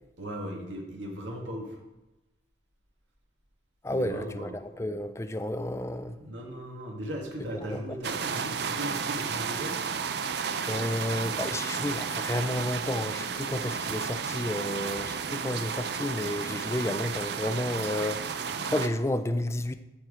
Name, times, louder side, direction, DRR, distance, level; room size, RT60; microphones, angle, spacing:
voice 1, 0.2-1.8 3.9-4.6 6.2-9.8, equal, 85° right, 1.9 m, -37 dB
voice 2, 3.8-6.2 7.6-7.8 10.7-19.7, left 1 dB, 15° left, 0.4 m, -31 dB
sound 1, 8.0-18.9, right 6 dB, 60° right, 0.5 m, -32 dB
13.0 x 4.6 x 4.9 m
head